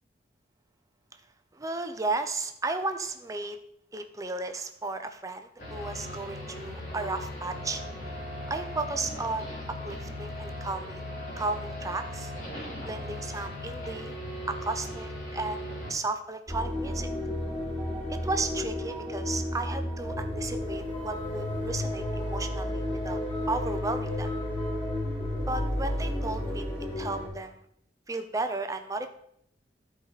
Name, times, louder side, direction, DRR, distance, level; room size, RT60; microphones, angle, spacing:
voice 1, 1.5-3.6 3.9-7.8 8.5-11.0 11.4-14.2 14.5-17.1 18.1-23.2 23.5-24.3 25.5-26.6 27.0-27.6 28.1-29.1, right 3 dB, 20° right, 7 dB, 0.6 m, -34 dB
sound 1, 5.6-15.9, left 1 dB, 45° left, 3.5 m, -38 dB
sound 2, 16.5-27.3, left 1 dB, 25° left, 3.5 m, -32 dB
14.0 x 4.8 x 4.0 m, 0.70 s
head